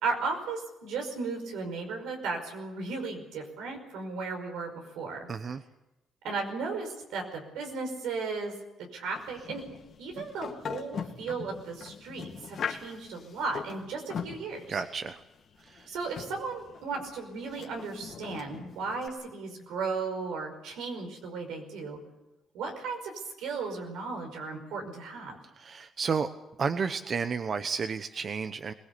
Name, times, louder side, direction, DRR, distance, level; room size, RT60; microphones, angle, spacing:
voice 1, 0.0-5.3 6.2-8.5 8.9-9.6 10.0-14.8 15.9-22.0 22.5-25.4, right 4 dB, 90° right, 3 dB, 5.3 m, -35 dB
voice 2, 5.3-5.6 14.7-15.2 15.7-15.9 25.6-26.3 26.6-28.7, right 5 dB, 45° right, 10 dB, 1.0 m, -31 dB
sound 1, 9.1-19.1, left 7 dB, 60° left, 2.1 m, -41 dB
22.5 x 18.5 x 8.4 m, 0.99 s
cardioid pair, 90°, 0 cm